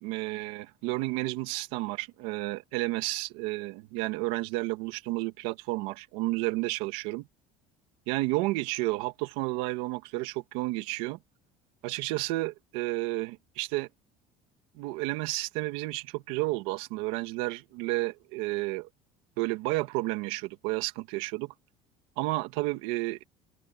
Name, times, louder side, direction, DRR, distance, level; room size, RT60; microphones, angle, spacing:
voice 1, 0.0-7.3 8.1-11.2 11.8-13.9 14.8-18.9 19.4-21.5 22.2-23.2, right 20 dB, 90° right, 2.0 m, -31 dB
open air
cardioid pair, 130°, 16 cm